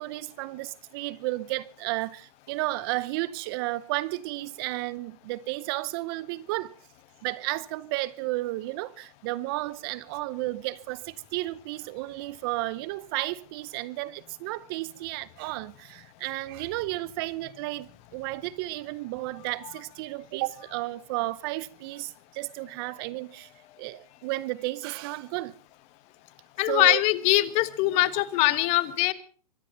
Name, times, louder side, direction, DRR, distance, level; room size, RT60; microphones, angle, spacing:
voice 1, 0.0-6.7 7.2-23.5 23.8-25.5 26.7-27.0, right 19 dB, 40° right, 0.7 m, -33 dB
voice 2, 26.6-29.1, left 18 dB, 35° left, 1.3 m, -22 dB
24.0 x 10.5 x 5.7 m
hypercardioid pair, 135°, 19 cm